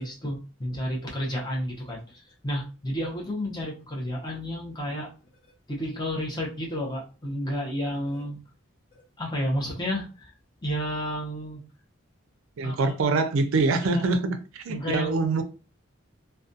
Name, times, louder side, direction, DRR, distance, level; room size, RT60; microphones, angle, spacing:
voice 1, 0.0-5.1 5.7-8.4 9.2-10.3 10.6-11.6 12.6-12.9 13.9-14.1 14.7-15.2, equal, 20° left, 0.6 m, -31 dB
voice 2, 12.6-15.4, right 3 dB, 75° right, 0.4 m, -24 dB
2.4 x 2.2 x 2.6 m
head